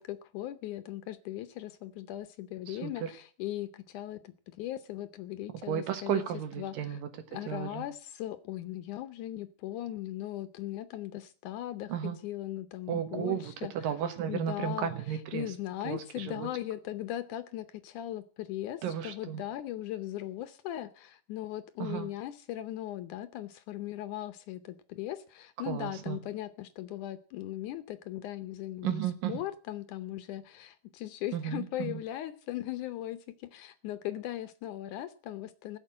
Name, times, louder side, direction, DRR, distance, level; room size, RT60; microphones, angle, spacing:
voice 1, 0.0-6.2 6.6-7.0 7.3-13.9 14.3-14.9 15.3-29.0 29.3-35.8, left 13 dB, 75° left, 11 dB, 2.1 m, -38 dB
voice 2, 2.7-3.1 5.7-7.9 11.9-12.2 12.9-15.5 15.8-16.5 18.8-19.4 21.8-22.1 25.7-26.2 28.8-29.4 31.3-32.0, right 9 dB, 85° right, 8 dB, 3.0 m, -34 dB
15.5 x 6.8 x 8.7 m, 0.41 s
omnidirectional pair, 3.9 m